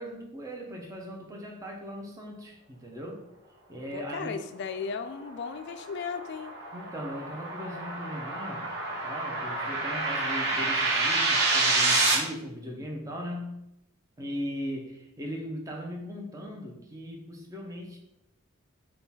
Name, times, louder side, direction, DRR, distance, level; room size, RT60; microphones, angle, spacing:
voice 1, 0.0-3.3 3.7-4.3 6.7-13.6 14.2-18.0, equal, 15° right, 0 dB, 0.6 m, -38 dB
voice 2, 3.9-6.6, left 5 dB, 50° left, 9 dB, 0.3 m, -36 dB
sound 1, 5.3-12.1, right 2 dB, 50° right, 1.2 m, -28 dB
3.7 x 2.3 x 4.1 m, 0.84 s
head